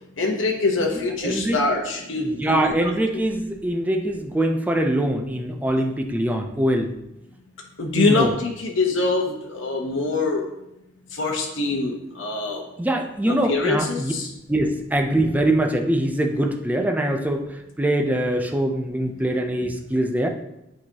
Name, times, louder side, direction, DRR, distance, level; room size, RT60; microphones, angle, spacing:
voice 1, 0.2-3.2 7.8-10.5 11.1-12.6 13.3-14.3, left 3 dB, 85° left, 0 dB, 0.9 m, -24 dB
voice 2, 1.2-1.6 2.2-6.9 8.0-8.3 12.8-14.1 14.5-20.3, right 1 dB, 10° right, 4 dB, 0.5 m, -23 dB
8.3 x 4.9 x 2.8 m, 0.88 s
head